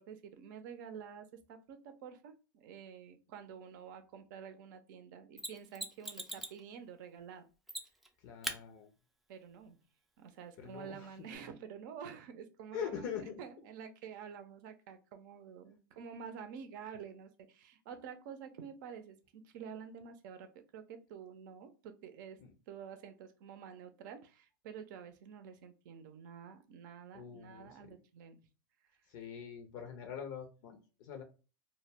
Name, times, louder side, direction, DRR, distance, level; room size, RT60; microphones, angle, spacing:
voice 1, 0.0-7.5 9.3-9.8 10.2-20.5 20.7-22.4 22.7-28.4, right 7 dB, 60° right, 8 dB, 0.5 m, -49 dB
Mechanisms, 5.4-6.6 7.7-8.1 8.4-8.6 11.3-11.4, right 1 dB, ahead, 0.4 m, -41 dB
voice 2, 8.2-8.9 10.6-11.1 12.7-13.4 22.4-22.5 27.1-27.8 29.1-31.2, left 8 dB, 55° left, 5 dB, 0.6 m, -43 dB
2.2 x 2.0 x 3.3 m, 0.33 s
hypercardioid pair, 105°, 12 cm